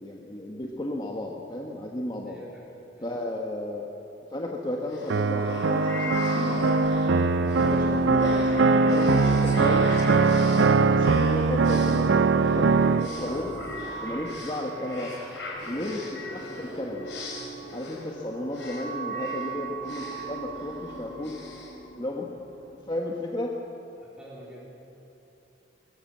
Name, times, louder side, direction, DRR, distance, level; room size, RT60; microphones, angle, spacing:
voice 1, 0.0-2.4 3.0-3.8 4.3-8.3 8.9-9.9 10.6-13.5 14.0-15.1 15.7-17.1 17.7-21.4 21.9-22.3 22.9-23.5, left 1 dB, 25° left, -1 dB, 1.4 m, -33 dB
voice 2, 2.3-3.1 24.0-24.6, right 1 dB, 5° right, -6 dB, 3.4 m, -47 dB
sound 1, 4.9-22.5, equal, 75° left, 4.9 m, -37 dB
sound 2, 5.1-13.1, right 4 dB, 80° right, 0.5 m, -21 dB
sound 3, 8.7-18.3, right 1 dB, 55° right, 6.0 m, -49 dB
21.5 x 20.0 x 7.5 m, 2.8 s
head